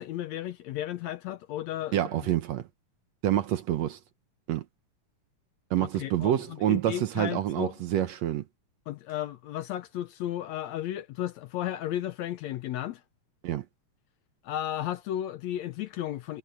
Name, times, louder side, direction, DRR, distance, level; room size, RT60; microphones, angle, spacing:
voice 1, 0.0-2.0 5.8-7.7 8.9-13.0 14.4-16.4, left 12 dB, 70° left, 1.8 m, -34 dB
voice 2, 1.9-2.7 3.2-4.0 4.5-4.6 5.7-8.4 13.4-13.7, right 12 dB, 70° right, 1.9 m, -27 dB
omnidirectional pair, 3.7 m